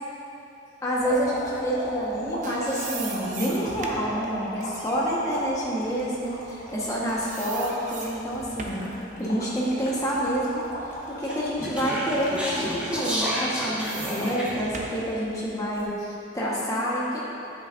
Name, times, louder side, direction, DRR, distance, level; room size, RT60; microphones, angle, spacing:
voice 1, 0.8-8.9 9.2-10.6 11.1-17.2, equal, 15° left, -7 dB, 1.3 m, -28 dB
sound 1, 1.0-13.3 13.8-14.5 15.5-15.7, equal, 40° left, 1.2 m, -38 dB
sound 2, 2.0-6.9 7.2-8.9 9.4-11.4 11.8-12.0 13.0-16.0, right 4 dB, 40° right, 0.7 m, -41 dB
Speech, 11.2-14.7, equal, 5° right, 1.0 m, -30 dB
10.0 x 7.9 x 2.6 m, 3.0 s
head